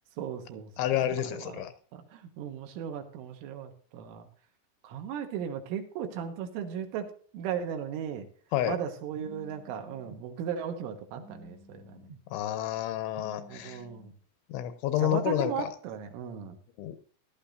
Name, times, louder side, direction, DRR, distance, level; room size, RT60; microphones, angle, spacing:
voice 1, 0.2-0.7 1.2-1.6 1.9-4.3 4.8-8.3 8.6-12.1 13.5-14.1 15.0-16.6, right 8 dB, 80° right, 5 dB, 3.8 m, -36 dB
voice 2, 0.8-1.7 8.5-8.8 12.3-13.8 14.5-15.7 16.8-17.0, left 12 dB, 80° left, 11 dB, 3.0 m, -29 dB
Telephone, 9.1-10.2 11.1-12.2 13.1-14.1, right 1 dB, 65° right, 3.5 m, -51 dB
17.0 x 12.0 x 2.6 m, 0.43 s
omnidirectional pair, 5.7 m